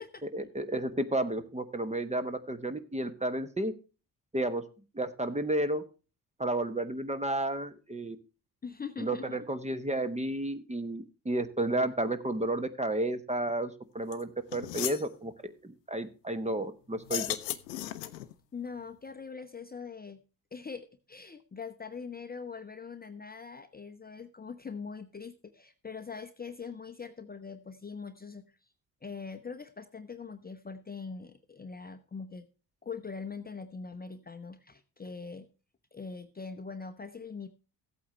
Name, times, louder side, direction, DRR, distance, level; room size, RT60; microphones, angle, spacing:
voice 1, 0.3-3.7 4.3-4.6 4.9-5.8 6.4-8.2 9.0-15.3 15.6-17.4, right 1 dB, 15° right, 11 dB, 1.0 m, -32 dB
voice 2, 8.6-9.4 18.5-20.2 20.5-28.6 29.0-32.5 32.8-35.5 35.9-37.5, left 5 dB, 20° left, 8 dB, 0.8 m, -42 dB
sound 1, 14.1-14.2 14.5-15.1 17.0-18.3, left 15 dB, 80° left, 0.7 m, -35 dB
15.0 x 8.5 x 3.2 m, 0.34 s
hypercardioid pair, 50°, 50 cm